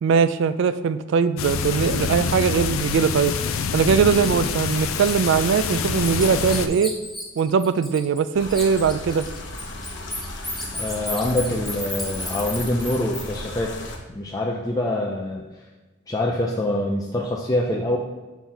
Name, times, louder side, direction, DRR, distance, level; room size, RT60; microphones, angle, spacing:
voice 1, 0.0-3.3 3.7-7.0 7.4-9.3, right 6 dB, 60° right, 14 dB, 0.3 m, -20 dB
sound 1, 1.4-6.7, left 6 dB, 85° left, 0.4 m, -26 dB
Bird, 4.2-4.3 4.8-8.2 8.5-13.2, left 1 dB, ahead, 0.8 m, -33 dB
sound 2, 8.3-14.0, left 2 dB, 60° left, 0.9 m, -35 dB
voice 2, 10.7-13.7 14.1-15.4 16.1-18.0, left 1 dB, 15° left, -2 dB, 0.4 m, -25 dB
6.1 x 3.9 x 4.1 m, 1.2 s
head